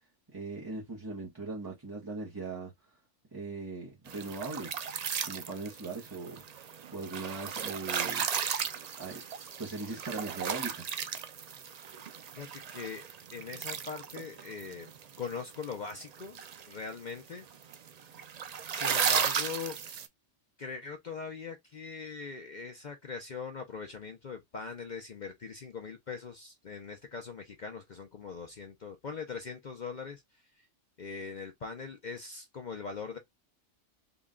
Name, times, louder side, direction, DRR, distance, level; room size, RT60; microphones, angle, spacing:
voice 1, 0.3-2.7 3.3-4.7 5.2-8.3 9.0-9.2 9.6-10.9, right 3 dB, 25° right, 0.7 m, -39 dB
sound 1, 4.1-20.1, right 7 dB, 85° right, 0.3 m, -35 dB
voice 2, 12.4-13.0 13.3-14.9 15.2-16.4 16.7-17.5 18.7-19.8 20.6-30.2 31.0-33.2, left 5 dB, 50° left, 0.6 m, -41 dB
3.9 x 2.2 x 3.6 m
omnidirectional pair, 1.3 m